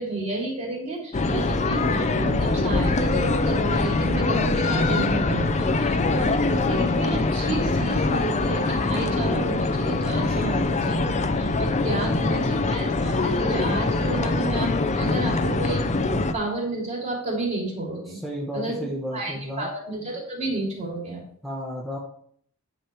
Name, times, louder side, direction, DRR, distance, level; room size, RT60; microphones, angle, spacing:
voice 1, 0.0-15.8 16.3-18.2 18.5-18.8 19.1-21.2, right 2 dB, 30° right, -2 dB, 3.0 m, -31 dB
sound 1, 1.1-16.3, left 3 dB, 30° left, 0.6 m, -23 dB
voice 2, 11.8-12.6 18.1-19.7 21.4-22.0, equal, ahead, -4 dB, 1.1 m, -33 dB
10.0 x 5.2 x 4.5 m, 0.63 s
head